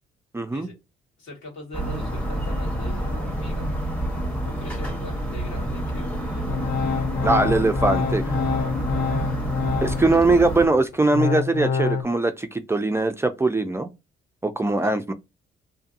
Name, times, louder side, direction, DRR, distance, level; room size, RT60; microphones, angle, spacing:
voice 1, 0.3-0.7 7.2-8.2 9.8-13.9 14.4-15.1, right 2 dB, 15° right, 0.3 m, -21 dB
voice 2, 1.2-3.7 4.4-6.7 14.6-14.9, left 2 dB, 80° left, 1.6 m, -42 dB
sound 1, 1.7-10.7, right 1 dB, 5° left, 0.9 m, -28 dB
Organ, 6.5-10.3 10.7-12.0, left 6 dB, 55° left, 0.4 m, -26 dB
2.6 x 2.5 x 2.5 m
cardioid pair, 90°, 20 cm